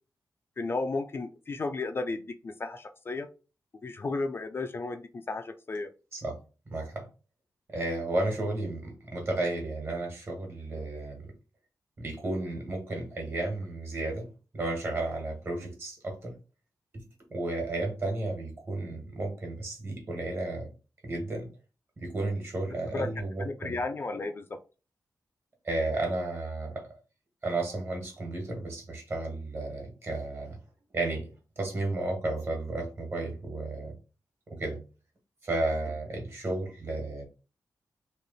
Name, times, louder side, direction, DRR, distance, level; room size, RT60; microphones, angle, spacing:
voice 1, 0.6-3.3 3.8-5.9 22.9-23.1 23.4-24.6, left 3 dB, 35° left, 7 dB, 0.3 m, -33 dB
voice 2, 6.7-7.1 7.7-11.3 12.0-14.3 14.5-16.3 17.3-20.7 21.0-21.5 22.0-23.7 25.6-26.9 27.4-30.6 30.9-34.0 34.5-34.8 35.4-37.2, right 2 dB, 40° right, 2 dB, 1.4 m, -33 dB
3.2 x 2.9 x 4.0 m, 0.33 s
wide cardioid pair, 160°, 7 cm